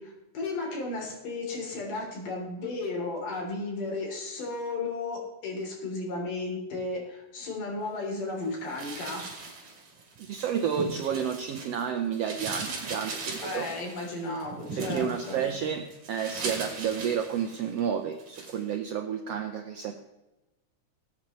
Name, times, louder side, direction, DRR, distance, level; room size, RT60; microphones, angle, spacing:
voice 1, 0.0-9.2 13.4-15.5, left 3 dB, 75° left, -1 dB, 4.8 m, -34 dB
sound 1, 8.7-11.8 12.1-17.8 18.2-18.6, right 3 dB, 50° right, 3.6 m, -39 dB
voice 2, 10.3-13.7 14.8-20.0, right 8 dB, 80° right, 5 dB, 1.4 m, -31 dB
19.5 x 8.7 x 3.1 m, 1.0 s
omnidirectional pair, 3.7 m